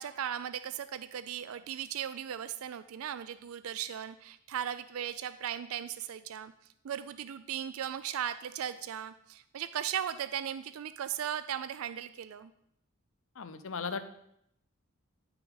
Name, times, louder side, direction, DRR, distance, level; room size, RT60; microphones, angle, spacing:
voice 1, 0.0-6.5 6.8-12.5, right 9 dB, 75° right, 14 dB, 0.4 m, -37 dB
voice 2, 13.4-14.0, left 5 dB, 65° left, 11 dB, 0.6 m, -36 dB
9.8 x 5.9 x 3.9 m, 0.75 s
head